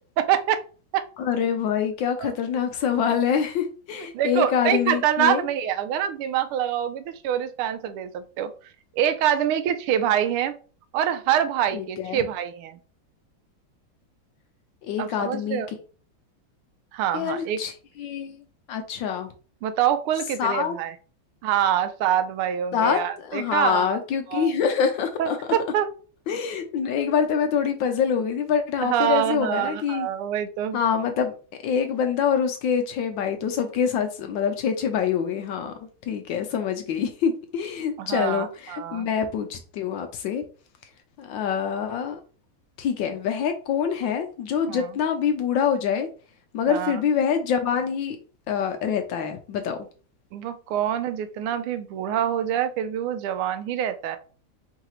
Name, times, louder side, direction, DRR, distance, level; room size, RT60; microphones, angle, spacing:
voice 1, 0.2-0.6 0.9-1.1 2.2-2.3 4.1-8.5 8.9-10.6 10.9-12.8 15.0-15.7 16.9-17.6 19.6-20.9 21.4-23.9 24.3-24.5 25.2-25.9 28.8-30.8 38.0-39.1 44.7-44.9 46.7-47.0 50.3-54.2, right 10 dB, 85° right, 11 dB, 1.5 m, -25 dB
voice 2, 1.2-5.4 11.7-12.2 14.8-15.6 17.1-17.7 18.0-18.4 18.7-19.3 20.4-20.8 22.7-25.4 26.3-30.1 30.7-31.3 31.6-35.7 36.1-40.4 41.2-42.2 42.8-46.1 46.5-48.2 48.5-49.8, left 7 dB, 75° left, 6 dB, 1.2 m, -25 dB
4.7 x 3.2 x 3.0 m, 0.38 s
omnidirectional pair, 2.3 m